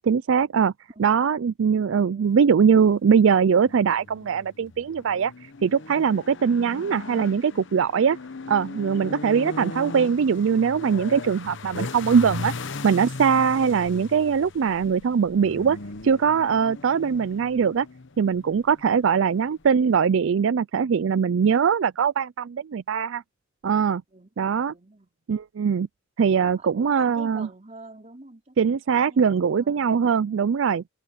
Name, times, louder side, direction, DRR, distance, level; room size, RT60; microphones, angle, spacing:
voice 1, 0.0-0.7 1.0-5.3 5.6-8.2 8.5-12.5 12.8-15.8 16.0-17.9 18.2-23.2 23.6-24.0 24.4-24.7 25.3-25.9 26.2-27.5 28.6-30.8, right 6 dB, 70° right, 0.4 m, -21 dB
voice 2, 0.9-1.3 1.9-2.4 24.1-25.3 26.4-28.6 28.9-30.6, right 2 dB, 35° right, 3.4 m, -47 dB
sound 1, 3.3-19.9, left 3 dB, 60° left, 1.0 m, -38 dB
head